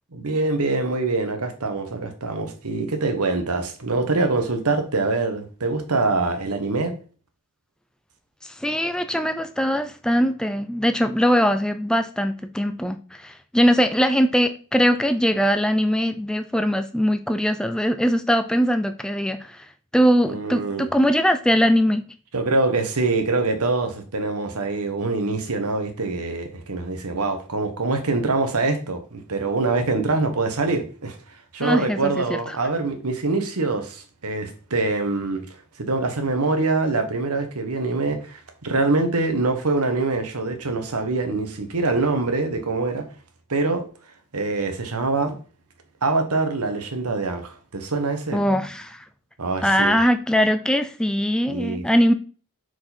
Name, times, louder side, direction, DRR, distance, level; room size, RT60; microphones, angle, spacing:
voice 1, 0.1-6.9 20.3-20.9 22.3-31.2 31.5-35.4 35.8-43.1 43.5-43.9 44.3-45.4 46.0-48.4 49.4-50.0 51.5-51.8, right 3 dB, 85° right, 1.3 m, -24 dB
voice 2, 8.4-19.7 19.9-22.1 31.6-32.6 48.3-49.0 49.6-52.1, equal, 5° left, 0.4 m, -21 dB
6.1 x 4.8 x 4.3 m
head